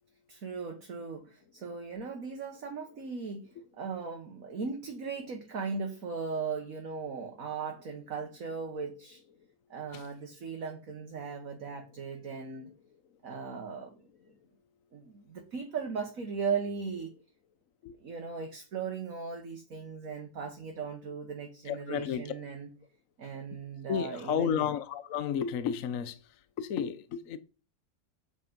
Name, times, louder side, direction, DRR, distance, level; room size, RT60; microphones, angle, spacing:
voice 1, 0.3-9.2 9.7-12.7 13.2-13.9 14.9-17.1 18.0-22.7 23.2-24.6, right 5 dB, 50° right, 1.8 m, -38 dB
voice 2, 21.7-22.2 23.9-26.2 26.6-27.4, left 8 dB, 55° left, 1.0 m, -32 dB
8.4 x 7.7 x 5.3 m
omnidirectional pair, 1.9 m